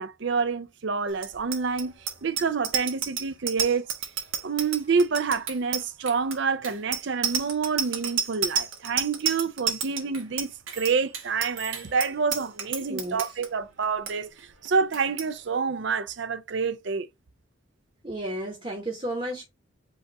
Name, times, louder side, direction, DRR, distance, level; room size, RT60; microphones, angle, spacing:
voice 1, 0.0-3.9 4.4-17.1, right 5 dB, 55° right, 0.5 m, -28 dB
Bicycle bell, 1.2-13.5 13.8-14.1 14.4-14.7 14.9-15.3, right 7 dB, 75° right, 1.3 m, -30 dB
voice 2, 12.9-13.2 18.0-19.4, right 1 dB, 25° right, 0.9 m, -32 dB
5.3 x 2.4 x 4.1 m
head